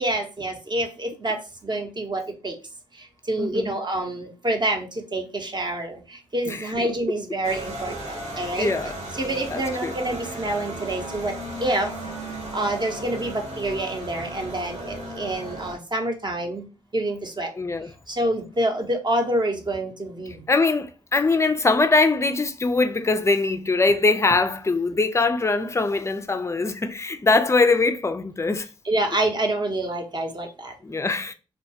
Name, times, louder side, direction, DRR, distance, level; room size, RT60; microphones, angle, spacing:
voice 1, 0.0-2.5 3.3-8.7 9.2-11.3 11.6-11.9 12.5-16.6 16.9-17.5 18.1-20.3 28.8-30.7, right 1 dB, 35° right, 0.7 m, -27 dB
voice 2, 3.4-3.7 6.5-6.9 8.6-8.9 9.5-10.0 17.6-17.9 20.5-28.7 30.8-31.3, left 3 dB, 20° left, 0.4 m, -22 dB
sound 1, 7.4-15.8, right 1 dB, 60° right, 0.9 m, -35 dB
2.3 x 2.2 x 2.7 m
supercardioid pair, 40°, 13 cm